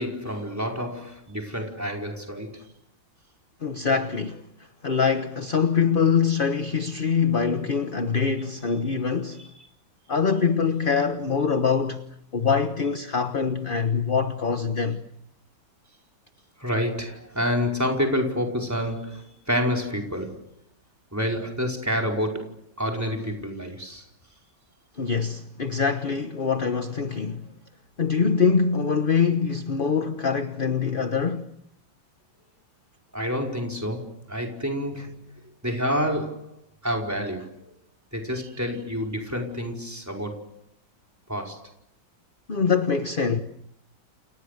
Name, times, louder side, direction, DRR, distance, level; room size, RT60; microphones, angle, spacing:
voice 1, 0.0-2.6 9.4-9.5 16.6-20.4 21.1-24.0 33.1-35.3 35.6-36.5 36.8-37.7 38.1-40.4 41.3-41.7, equal, 10° right, 4.9 m, -28 dB
voice 2, 3.6-4.4 4.8-9.4 10.1-12.0 12.3-15.0 25.0-27.4 28.0-31.5 42.5-43.4, left 6 dB, 30° left, 1.2 m, -24 dB
30.0 x 29.5 x 6.7 m
omnidirectional pair, 2.0 m